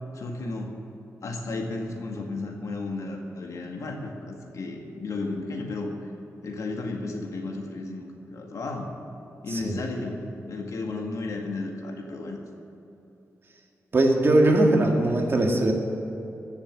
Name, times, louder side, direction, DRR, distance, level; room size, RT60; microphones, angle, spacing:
voice 1, 0.1-0.8 1.2-5.9 6.4-8.9 9.4-12.4, left 3 dB, 70° left, 1 dB, 2.0 m, -33 dB
voice 2, 13.9-15.7, right 1 dB, 40° right, 1 dB, 1.9 m, -20 dB
14.5 x 7.3 x 7.4 m, 2.9 s
wide cardioid pair, 105°, 6 cm